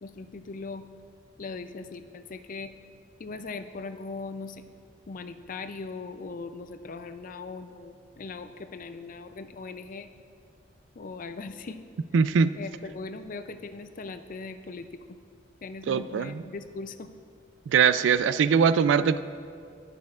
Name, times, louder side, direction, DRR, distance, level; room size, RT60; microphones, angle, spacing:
voice 1, 0.0-0.8 1.4-2.7 3.2-4.7 5.1-10.1 11.0-11.8 12.1-12.2 12.6-15.2 15.6-17.1, left 4 dB, 45° left, 10 dB, 0.4 m, -39 dB
voice 2, 12.1-12.5 15.9-16.4 17.7-19.2, right 6 dB, 75° right, 14 dB, 0.3 m, -22 dB
18.5 x 6.6 x 2.4 m, 2.4 s
head